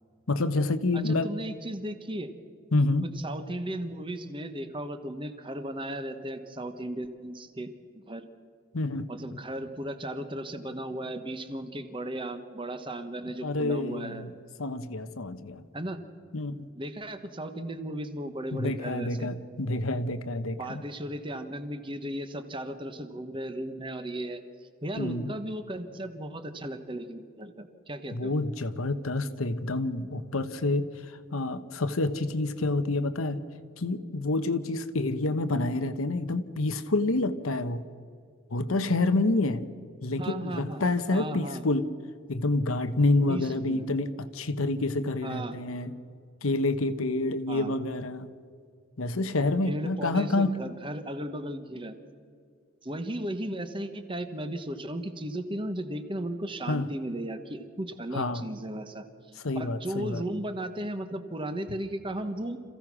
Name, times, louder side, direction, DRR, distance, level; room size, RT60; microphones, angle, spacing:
voice 1, 0.3-1.3 2.7-3.1 8.7-9.1 13.4-14.3 14.6-15.6 16.3-16.7 18.5-20.8 25.0-25.3 28.1-33.4 33.8-37.8 38.5-39.6 40.0-41.9 42.3-45.9 46.4-48.3 49.0-50.5 56.7-56.9 58.1-58.4 59.4-60.2, left 2 dB, 85° left, 11 dB, 1.1 m, -28 dB
voice 2, 0.9-2.3 3.0-7.7 8.0-8.3 9.1-14.2 15.7-16.0 16.8-19.3 20.6-24.4 24.8-28.3 40.2-41.6 43.3-43.8 45.2-45.6 47.5-47.7 49.6-51.9 52.8-59.1 59.5-62.6, right 1 dB, 25° right, 9 dB, 1.3 m, -36 dB
27.0 x 15.5 x 6.2 m, 2.2 s
head